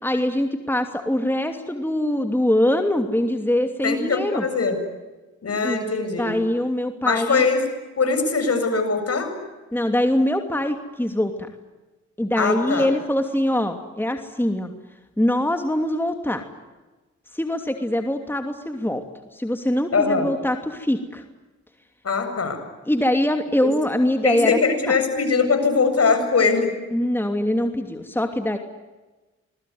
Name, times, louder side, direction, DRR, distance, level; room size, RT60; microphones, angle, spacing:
voice 1, 0.0-4.4 5.6-5.9 6.2-7.5 9.7-11.3 12.2-14.7 15.2-16.4 17.3-19.0 19.3-21.2 22.9-24.6 24.9-25.0 26.9-28.6, left 1 dB, 5° left, 6 dB, 2.8 m, -23 dB
voice 2, 3.8-4.8 5.4-6.3 7.0-7.6 8.0-9.3 12.4-12.9 19.9-20.3 22.0-22.6 23.6-23.7 24.2-26.7, left 4 dB, 55° left, 7 dB, 7.6 m, -21 dB
26.5 x 21.0 x 9.6 m, 1.2 s
cardioid pair, 55°, 30 cm